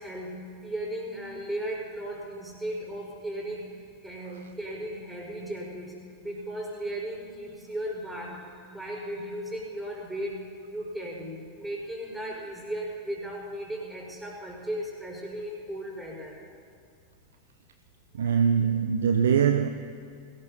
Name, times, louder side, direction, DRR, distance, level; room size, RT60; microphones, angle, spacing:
voice 1, 0.0-3.7 4.0-6.0 6.2-10.4 10.6-16.4 18.2-18.4, right 1 dB, 5° right, 4.8 m, -36 dB
voice 2, 18.1-19.7, right 7 dB, 65° right, 0.5 m, -22 dB
21.5 x 19.0 x 2.8 m
figure-of-eight pair, 90°, 0 cm